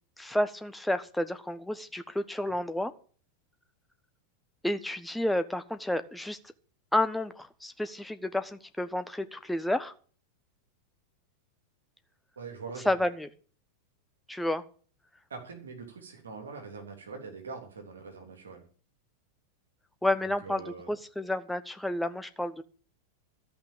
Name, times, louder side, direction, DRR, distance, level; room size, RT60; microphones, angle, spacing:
voice 1, 0.2-2.9 4.6-6.4 6.9-9.9 12.8-13.3 14.3-14.6 20.0-22.6, left 1 dB, 5° left, 10 dB, 1.2 m, -30 dB
voice 2, 12.3-13.0 15.3-18.6 20.2-20.9, right 4 dB, 70° right, 3 dB, 3.3 m, -43 dB
14.0 x 5.8 x 8.8 m, 0.42 s
figure-of-eight pair, 90°, 0 cm